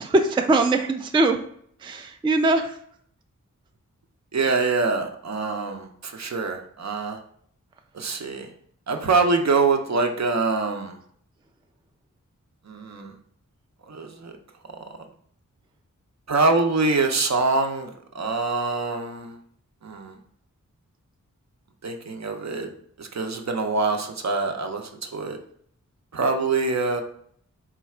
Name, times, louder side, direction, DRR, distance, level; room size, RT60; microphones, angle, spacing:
voice 1, 0.0-1.4 1.8-2.8, right 2 dB, 15° right, 6 dB, 0.3 m, -21 dB
voice 2, 4.3-7.2 7.9-8.5 8.9-11.0 12.7-13.1 13.9-14.3 16.3-19.4 19.8-20.2 21.8-22.7 23.0-25.4 26.1-27.0, right 3 dB, 55° right, 4 dB, 0.6 m, -24 dB
3.8 x 2.4 x 4.3 m, 0.62 s
wide cardioid pair, 55°, 32 cm